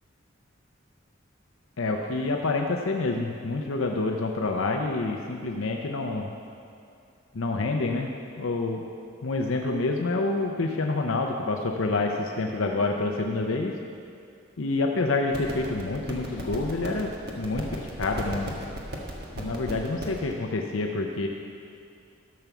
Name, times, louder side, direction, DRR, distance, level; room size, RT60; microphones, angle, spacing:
voice 1, 1.8-6.3 7.3-8.1 8.4-8.8 9.2-13.7 14.6-17.1 17.4-18.6 19.4-21.3, left 3 dB, 80° left, 2 dB, 0.7 m, -27 dB
sound 1, 15.3-20.3, equal, 50° right, 1.5 m, -36 dB
12.5 x 7.0 x 6.1 m, 2.5 s
head